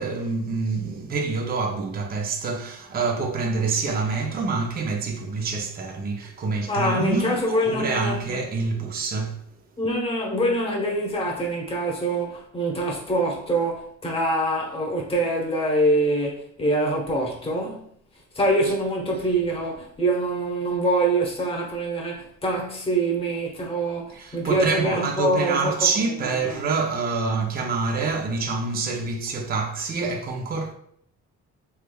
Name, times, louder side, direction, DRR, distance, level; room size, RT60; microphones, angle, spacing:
voice 1, 0.0-9.5 24.1-30.7, right 4 dB, 30° right, 0.5 m, -26 dB
voice 2, 6.7-8.3 9.8-17.8 18.3-26.1 26.4-26.6, right 1 dB, 20° left, 1.0 m, -25 dB
3.4 x 3.1 x 2.2 m
cardioid pair, 90°, 30 cm